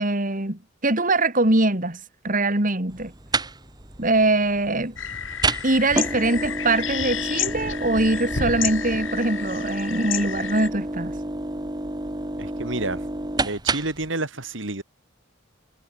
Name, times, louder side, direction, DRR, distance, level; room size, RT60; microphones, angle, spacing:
voice 1, 0.0-2.0 2.2-3.1 4.0-4.9 5.6-11.1, right 2 dB, 40° right, 3.3 m, -22 dB
sound 1, 2.9-14.1, right 2 dB, 20° right, 1.8 m, -30 dB
sound 2, 5.0-10.7, left 7 dB, 70° left, 6.5 m, -30 dB
voice 2, 12.4-13.0 13.4-14.8, right 2 dB, 65° right, 3.3 m, -29 dB
head